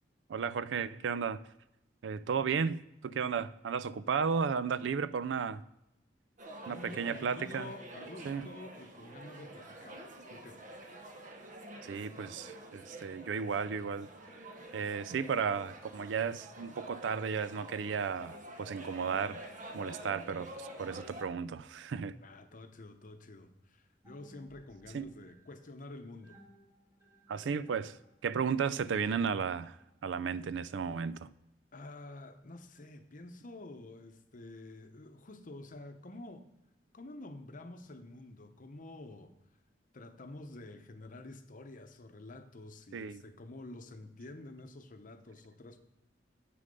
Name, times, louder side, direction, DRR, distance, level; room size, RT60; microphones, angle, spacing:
voice 1, 0.3-1.4 2.0-5.6 6.7-7.8 8.2-8.5 11.8-14.1 14.7-19.4 19.7-22.2 24.9-25.1 27.3-28.0 28.2-31.3 42.9-43.2, right 6 dB, 85° right, 0.4 m, -34 dB
sound 1, 6.4-21.2, right 1 dB, 45° right, 0.9 m, -48 dB
voice 2, 6.7-10.8 22.2-26.4 31.7-36.5 36.9-39.3 39.9-45.8, left 2 dB, 45° left, 0.8 m, -49 dB
sound 2, 24.0-30.2, equal, 15° right, 1.7 m, -62 dB
7.7 x 6.5 x 5.3 m
head